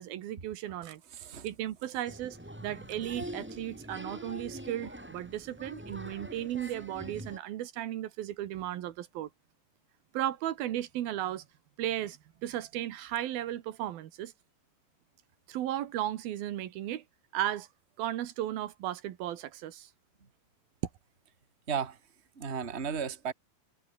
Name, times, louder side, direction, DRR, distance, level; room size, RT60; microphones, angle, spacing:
voice 1, 0.0-1.0 1.4-9.3 10.1-11.4 11.8-14.3 15.5-17.0 17.3-17.7 18.0-19.9, right 12 dB, 85° right, 3.3 m, -35 dB
voice 2, 0.8-1.5 21.7-22.0 22.4-23.3, right 7 dB, 20° right, 2.1 m, -35 dB
Applause, 2.1-7.4, equal, 5° right, 3.0 m, -44 dB
omnidirectional pair, 4.2 m